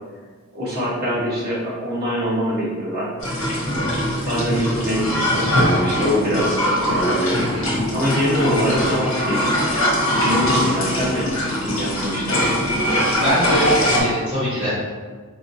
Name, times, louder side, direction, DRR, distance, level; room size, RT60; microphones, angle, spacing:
voice 1, 0.5-3.1 4.2-7.4 7.9-9.6 10.1-12.4, equal, 45° right, -7 dB, 1.2 m, -24 dB
sound 1, 3.2-14.0, equal, 65° left, 1.1 m, -21 dB
voice 2, 7.3-7.8 13.1-14.7, equal, 25° right, -11 dB, 0.9 m, -23 dB
4.5 x 2.8 x 2.7 m, 1.5 s
head